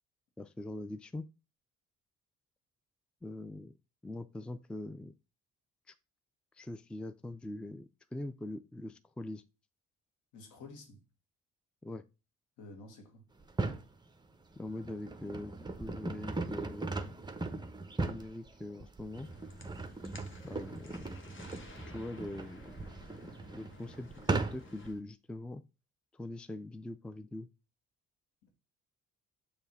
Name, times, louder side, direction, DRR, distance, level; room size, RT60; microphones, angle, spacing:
voice 1, 0.4-1.3 3.2-3.7 4.0-5.1 5.9-6.0 6.5-9.4 11.8-12.0 14.6-15.5 15.8-17.1 18.0-19.3 20.4-21.0 21.9-22.9 23.5-24.1 24.5-25.6 26.1-27.5, left 1 dB, 5° left, 0.4 m, -42 dB
voice 2, 10.3-11.0 12.6-13.3 28.4-28.5, left 3 dB, 90° left, 1.9 m, -51 dB
sound 1, 13.4-13.9 14.5-24.9, right 3 dB, 15° right, 0.9 m, -38 dB
sound 2, 19.1-24.9, left 3 dB, 40° left, 1.4 m, -54 dB
7.1 x 3.2 x 5.5 m
cardioid pair, 90°, 30 cm